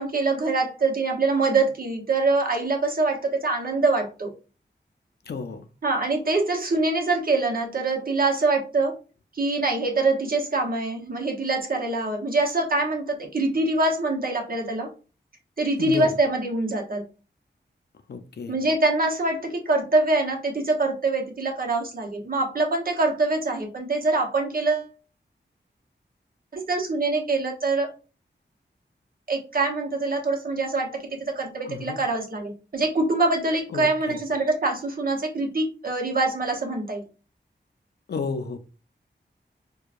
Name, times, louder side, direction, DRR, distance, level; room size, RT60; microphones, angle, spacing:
voice 1, 0.0-4.3 5.8-8.9 9.3-14.9 15.6-17.0 18.5-24.9 26.5-27.9 29.3-37.0, right 3 dB, 50° right, 0.9 m, -24 dB
voice 2, 5.3-5.7 15.8-16.1 18.1-18.6 31.6-32.0 33.7-34.2 38.1-38.6, left 4 dB, 65° left, 0.4 m, -32 dB
4.6 x 2.2 x 2.5 m
wide cardioid pair, 100°, 19 cm